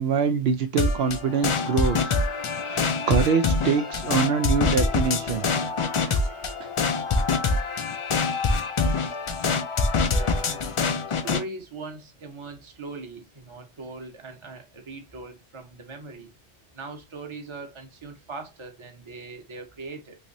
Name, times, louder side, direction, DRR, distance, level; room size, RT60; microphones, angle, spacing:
voice 1, 0.0-2.1 2.6-5.5 6.0-6.2 6.6-6.7, right 6 dB, 75° right, 0.8 m, -24 dB
sound 1, 0.8-11.4, left 4 dB, 50° left, 0.4 m, -25 dB
voice 2, 10.0-10.7 11.1-16.3 16.7-20.2, right 3 dB, 30° right, 0.8 m, -40 dB
3.2 x 2.9 x 2.6 m
omnidirectional pair, 1.1 m